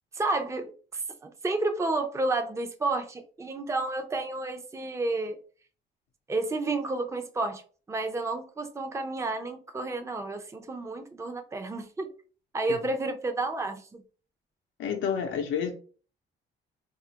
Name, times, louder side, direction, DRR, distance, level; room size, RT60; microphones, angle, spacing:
voice 1, 0.1-5.4 6.3-7.6 7.9-12.1 12.5-14.0, right 2 dB, 15° right, 0.5 m, -31 dB
voice 2, 14.8-15.7, left 7 dB, 85° left, 0.6 m, -29 dB
4.0 x 2.4 x 2.8 m
cardioid pair, 90°, 20 cm